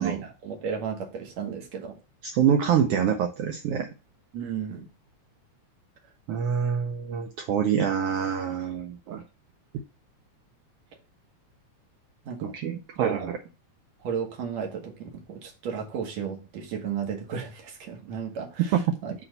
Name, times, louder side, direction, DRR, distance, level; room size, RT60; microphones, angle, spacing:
voice 1, 0.0-2.0 4.3-4.9 12.3-13.2 14.0-18.8 19.0-19.1, right 7 dB, 70° right, 2.5 m, -33 dB
voice 2, 2.2-3.9 6.3-9.2 12.4-13.4 18.7-19.0, right 8 dB, 85° right, 1.3 m, -26 dB
8.4 x 3.2 x 3.9 m
omnidirectional pair, 3.4 m